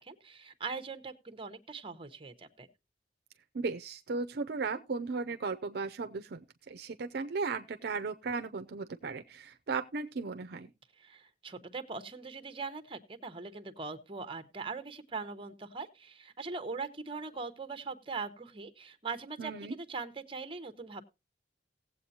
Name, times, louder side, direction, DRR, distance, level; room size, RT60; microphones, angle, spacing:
voice 1, 0.0-2.7 11.0-21.0, right 4 dB, 30° right, 1.0 m, -41 dB
voice 2, 3.5-10.7 19.4-19.7, right 4 dB, 65° right, 0.5 m, -36 dB
18.0 x 7.8 x 2.8 m
head